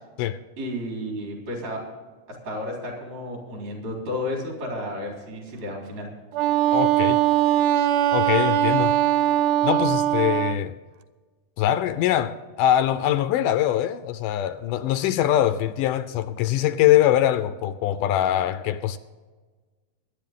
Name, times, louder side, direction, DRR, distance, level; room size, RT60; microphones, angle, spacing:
voice 1, 0.6-1.8 2.3-6.1, left 1 dB, 55° right, 5.2 m, -32 dB
Wind instrument woodwind instrument, 6.3-10.6, right 12 dB, 80° right, 2.0 m, -21 dB
voice 2, 6.7-7.2 8.1-9.0 9.6-10.8 11.6-19.0, left 12 dB, 80° left, 2.0 m, -23 dB
23.0 x 9.7 x 3.8 m
omnidirectional pair, 3.9 m